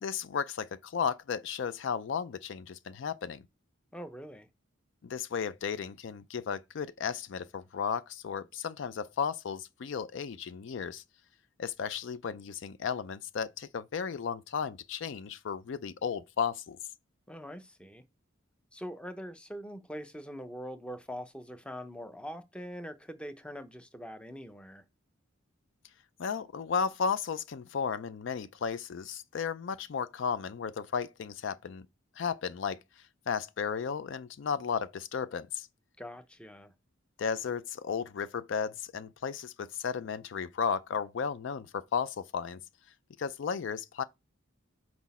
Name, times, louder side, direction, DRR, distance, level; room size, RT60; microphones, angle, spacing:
voice 1, 0.0-3.4 5.0-11.0 11.6-16.8 26.2-31.9 32.2-32.8 33.3-35.7 37.2-42.6 43.2-44.0, left 6 dB, 60° left, 0.4 m, -34 dB
voice 2, 3.9-4.5 17.3-18.0 18.7-24.8 36.0-36.7, equal, 5° left, 0.6 m, -43 dB
6.1 x 4.7 x 4.2 m
head